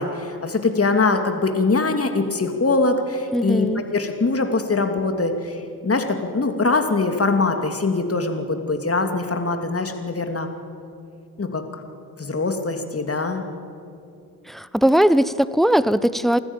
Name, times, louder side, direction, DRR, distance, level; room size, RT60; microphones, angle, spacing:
voice 1, 0.0-10.5 11.4-11.6 12.2-13.4, left 3 dB, 30° left, 5 dB, 2.7 m, -22 dB
voice 2, 3.3-3.8 14.5-16.4, equal, ahead, 16 dB, 0.8 m, -19 dB
29.5 x 13.5 x 7.4 m, 2.6 s
hypercardioid pair, 40°, 45 cm